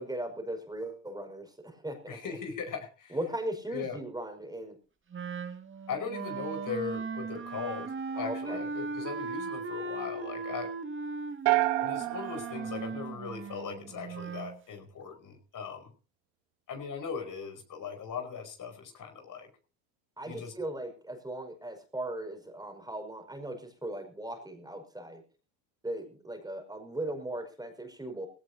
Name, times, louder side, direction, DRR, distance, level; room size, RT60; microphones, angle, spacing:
voice 1, 0.0-2.2 3.1-4.8 8.1-8.6 20.2-25.2 25.8-28.3, right 1 dB, 10° right, 5 dB, 5.4 m, -38 dB
voice 2, 2.1-3.2 3.7-4.0 5.9-10.7 11.8-15.9 16.7-19.5 20.2-20.5, left 6 dB, 40° left, 5 dB, 5.2 m, -39 dB
Wind instrument woodwind instrument, 5.1-14.6, right 4 dB, 25° right, 1.9 m, -38 dB
sound 1, 11.5-13.7, right 21 dB, 55° right, 1.0 m, -30 dB
19.5 x 17.5 x 2.8 m, 0.35 s
hypercardioid pair, 85°, 50 cm